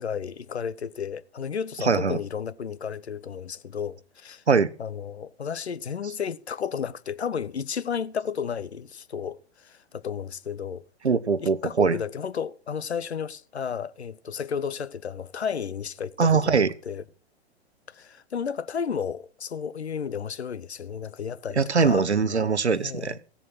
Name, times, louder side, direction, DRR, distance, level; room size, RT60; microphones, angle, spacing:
voice 1, 0.0-4.4 4.8-10.8 11.4-16.6 16.8-17.0 17.9-22.1 22.7-23.2, left 7 dB, 80° left, 0.8 m, -33 dB
voice 2, 1.8-2.2 4.5-4.7 11.0-12.0 16.2-16.7 21.6-23.2, right 5 dB, 90° right, 0.8 m, -22 dB
15.5 x 7.2 x 6.1 m
figure-of-eight pair, 110°, 33 cm